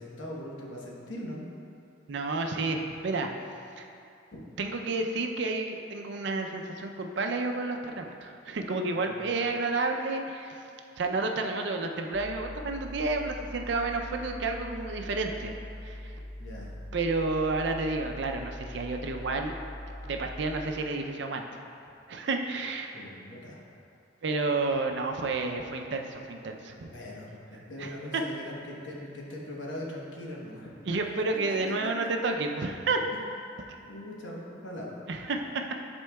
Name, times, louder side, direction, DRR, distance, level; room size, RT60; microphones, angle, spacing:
voice 1, 0.0-1.4 4.3-4.4 9.0-9.2 16.4-16.7 22.9-23.6 26.9-31.0 33.9-35.0, left 1 dB, 70° left, -3 dB, 1.0 m, -41 dB
voice 2, 2.1-3.3 3.8-3.9 4.6-10.6 11.0-15.5 15.8-16.2 16.9-19.6 20.0-21.4 22.1-23.0 24.2-26.9 27.8-28.0 30.9-33.0 35.1-35.6, right 3 dB, 65° right, 3 dB, 0.5 m, -30 dB
sound 1, 12.1-20.7, left 1 dB, ahead, 0.6 m, -42 dB
10.0 x 4.4 x 2.3 m, 2.6 s
head